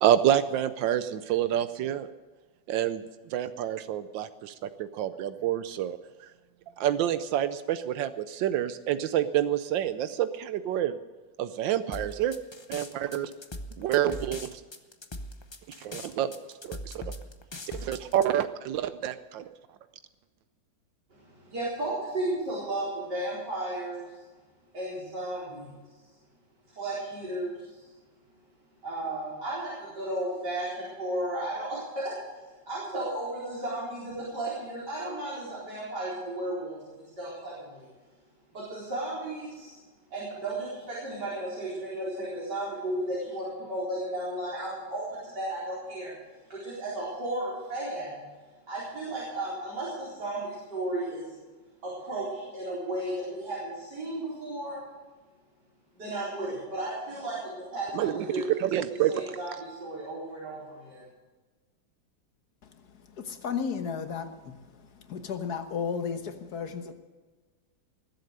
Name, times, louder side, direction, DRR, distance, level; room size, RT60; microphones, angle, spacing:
voice 1, 0.0-2.1 2.7-3.0 3.3-4.5 4.8-6.0 6.8-10.9 11.4-12.4 12.7-13.3 13.8-14.5 15.8-16.3 16.6-17.1 17.8-19.4 57.9-58.2 58.6-59.1, right 11 dB, 85° right, 12 dB, 1.4 m, -27 dB
sound 1, 11.9-18.3, left 1 dB, 35° left, 0.4 m, -40 dB
voice 2, 21.2-24.2 24.7-25.7 26.7-27.8 28.8-32.1 32.7-36.8 37.2-37.9 38.5-39.7 40.1-46.1 46.5-48.2 48.7-51.3 51.8-54.8 55.9-58.6 58.8-61.0, right 1 dB, 65° right, -7 dB, 5.0 m, -34 dB
voice 3, 63.2-64.6 65.1-66.9, left 6 dB, 60° left, 8 dB, 1.6 m, -33 dB
21.0 x 7.9 x 6.6 m, 1.3 s
omnidirectional pair, 2.0 m